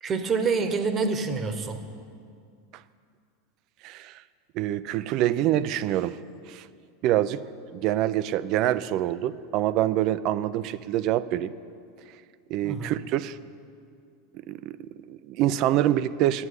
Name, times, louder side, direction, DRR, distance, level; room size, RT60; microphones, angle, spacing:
voice 1, 0.0-1.8 12.6-12.9, right 4 dB, 30° right, 8 dB, 1.1 m, -27 dB
voice 2, 3.8-4.2 4.5-6.2 6.5-6.7 7.0-7.4 7.7-11.5 12.5-13.4 14.3-16.5, right 13 dB, 50° right, 16 dB, 0.4 m, -26 dB
9.9 x 7.8 x 9.5 m, 2.3 s
supercardioid pair, 130°, 0 cm